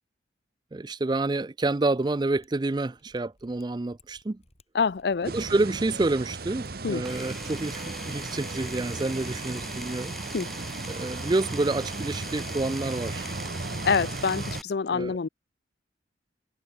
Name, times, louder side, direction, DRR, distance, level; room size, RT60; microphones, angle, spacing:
voice 1, 0.7-4.4 5.3-10.2 10.9-13.3 14.9-15.2, right 2 dB, 25° right, 0.4 m, -28 dB
Mechanisms, 2.1-12.6, left 3 dB, 35° left, 5.9 m, -65 dB
voice 2, 4.7-5.3 6.8-7.0 10.3-10.5 13.8-15.3, left 5 dB, 60° left, 0.5 m, -26 dB
sound 1, 5.2-14.6, right 3 dB, 55° right, 1.1 m, -36 dB
Power tool, 7.0-14.6, equal, ahead, 2.1 m, -41 dB
head